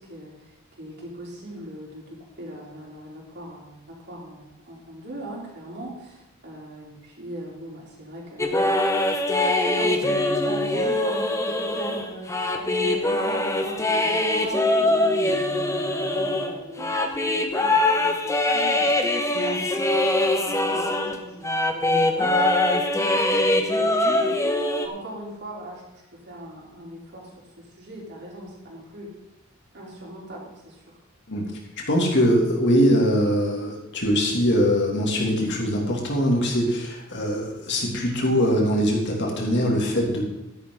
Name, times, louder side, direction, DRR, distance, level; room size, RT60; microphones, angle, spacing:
voice 1, 0.0-8.9 9.8-18.9 19.3-29.1 29.7-31.0, right 1 dB, 55° right, -3 dB, 4.0 m, -40 dB
sound 1, 8.4-21.2 21.4-24.9, left 1 dB, 15° left, 1.0 m, -23 dB
voice 2, 31.9-40.3, equal, 60° left, -1 dB, 2.8 m, -22 dB
13.0 x 11.0 x 4.0 m, 0.95 s
head